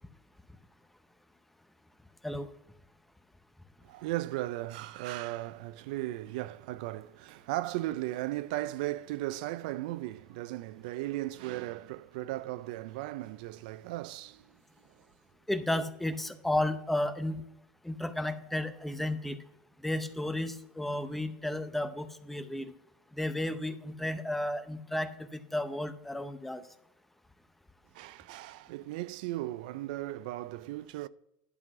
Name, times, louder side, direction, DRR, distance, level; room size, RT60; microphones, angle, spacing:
voice 1, 3.8-14.5 27.9-31.1, right 16 dB, 80° right, 0.3 m, -36 dB
voice 2, 15.5-17.4 17.8-19.4 19.8-22.7 23.1-26.6, left 1 dB, 5° left, 0.6 m, -33 dB
11.0 x 3.8 x 5.9 m
supercardioid pair, 130°, 4 cm